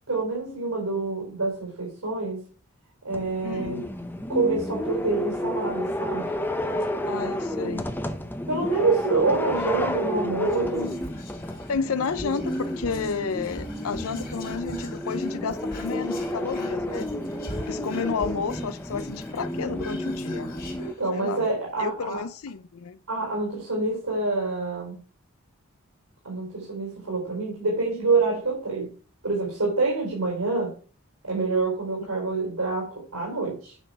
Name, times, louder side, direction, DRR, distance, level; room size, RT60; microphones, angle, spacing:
voice 1, 0.1-2.4 3.0-3.9 4.3-6.3 7.2-7.3 7.6-7.8 8.5-11.0 20.8-22.2 23.1-25.0 26.2-28.9 29.2-30.7 31.2-33.7, right 3 dB, 85° right, 4.1 m, -27 dB
sound 1, 3.1-20.9, left 1 dB, 10° left, 0.7 m, -31 dB
voice 2, 3.4-3.8 7.1-7.9 11.7-17.1 17.7-20.5 21.1-21.5 21.8-23.0, left 5 dB, 75° left, 0.5 m, -31 dB
Whispering, 10.4-21.5 21.8-21.9 22.1-22.5, left 2 dB, 40° left, 2.4 m, -43 dB
9.2 x 6.0 x 4.8 m
head